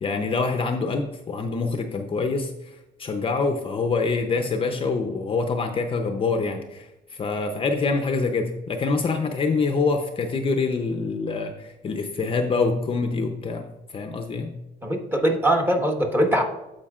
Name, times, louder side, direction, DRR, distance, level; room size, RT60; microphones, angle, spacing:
voice 1, 0.0-2.5 3.0-13.7 13.9-14.5, left 4 dB, 30° left, 5 dB, 0.7 m, -25 dB
voice 2, 14.8-16.4, right 1 dB, 15° right, 2 dB, 1.3 m, -21 dB
13.5 x 5.1 x 2.4 m, 0.94 s
cardioid pair, 110°, 17 cm